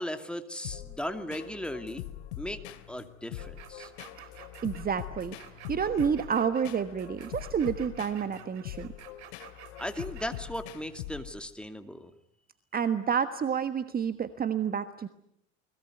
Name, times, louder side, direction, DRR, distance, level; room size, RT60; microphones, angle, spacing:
voice 1, 0.0-2.1 2.4-3.9 9.8-12.1, left 1 dB, 5° left, 7 dB, 2.5 m, -37 dB
sound 1, 0.6-11.5, left 13 dB, 65° left, 2.4 m, -43 dB
sound 2, 3.4-10.5, right 10 dB, 60° right, 4.5 m, -51 dB
voice 2, 4.4-5.4 5.7-8.9 12.7-15.1, right 7 dB, 25° right, 11 dB, 1.4 m, -29 dB
29.5 x 21.0 x 9.3 m, 0.74 s
hypercardioid pair, 85°, 36 cm